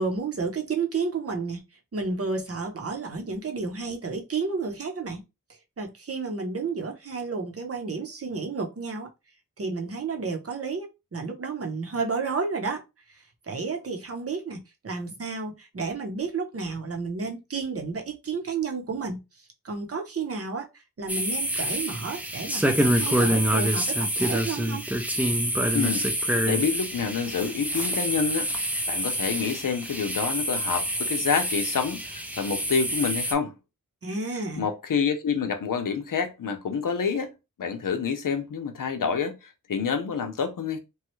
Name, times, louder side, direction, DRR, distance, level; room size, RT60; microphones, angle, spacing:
voice 1, 0.0-1.6 1.9-5.2 5.5-9.1 9.6-24.8 34.0-34.7, right 4 dB, 45° right, 0.8 m, -31 dB
sound 1, 21.1-33.3, equal, 5° right, 0.5 m, -26 dB
voice 2, 25.7-26.1 26.4-28.5 28.9-33.5 34.6-37.3 37.6-40.8, left 6 dB, 70° left, 0.7 m, -27 dB
3.1 x 2.3 x 3.0 m
wide cardioid pair, 85°, 34 cm